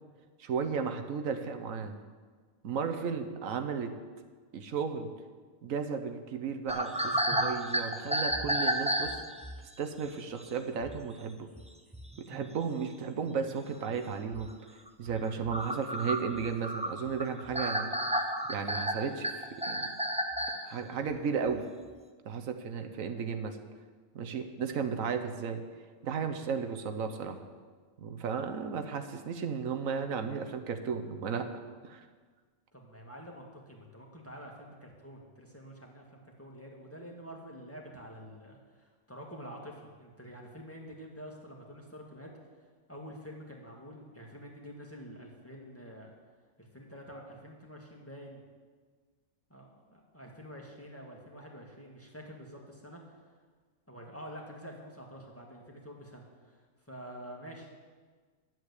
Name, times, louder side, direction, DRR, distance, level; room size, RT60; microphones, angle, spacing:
voice 1, 0.4-1.9 2.6-3.9 4.5-5.1 5.6-9.2 9.8-11.5 12.2-14.5 15.0-17.9 18.5-19.3 19.6-19.9 20.6-21.7 22.2-23.6 24.1-25.6 26.0-27.4 28.0-31.5 31.8-32.1, right 6 dB, 85° right, 6 dB, 1.3 m, -34 dB
sound 1, 6.7-9.6 10.4-10.5 10.8-11.0 11.6-11.7 11.9-12.5 13.1-13.2 13.4-13.5 14.3-14.4 14.9-20.6, equal, 5° right, 0.6 m, -31 dB
voice 2, 32.7-42.3 42.6-46.1 46.6-48.4 49.5-53.2 53.9-57.7, equal, 10° left, -1 dB, 1.8 m, -48 dB
11.0 x 7.7 x 8.3 m, 1.5 s
omnidirectional pair, 1.4 m